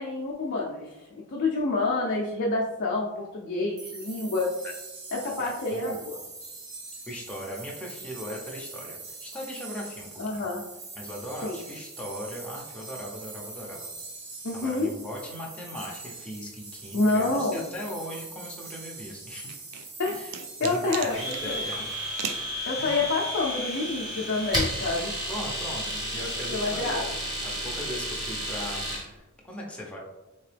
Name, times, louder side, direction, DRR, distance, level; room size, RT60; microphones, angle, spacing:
voice 1, 0.0-4.5 5.1-6.1 10.2-10.6 11.4-11.6 14.4-14.9 16.9-17.6 20.0-20.2 20.6-21.6 22.7-25.1 26.5-27.0, left 3 dB, 55° left, -3 dB, 0.5 m, -28 dB
sound 1, 3.8-22.5, right 3 dB, 65° right, 1.5 m, -43 dB
voice 2, 5.3-6.0 7.1-10.5 10.9-13.9 14.5-19.6 20.1-20.3 20.6-21.8 22.8-23.2 25.3-27.1 27.4-30.0, equal, 5° left, -3 dB, 0.7 m, -39 dB
sound 2, 19.5-21.4 22.2-22.5, right 7 dB, 80° right, 0.4 m, -36 dB
Domestic sounds home sounds, 21.1-29.1, equal, 20° right, 1.2 m, -32 dB
3.8 x 2.9 x 3.3 m, 1.0 s
head